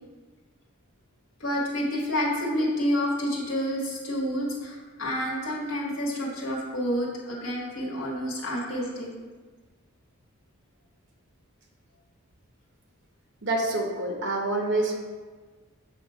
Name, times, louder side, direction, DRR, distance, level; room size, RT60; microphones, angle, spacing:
voice 1, 1.4-9.1, equal, 65° left, -4 dB, 1.5 m, -29 dB
voice 2, 13.4-15.0, right 2 dB, 55° right, 1 dB, 1.0 m, -27 dB
7.4 x 2.9 x 5.6 m, 1.4 s
head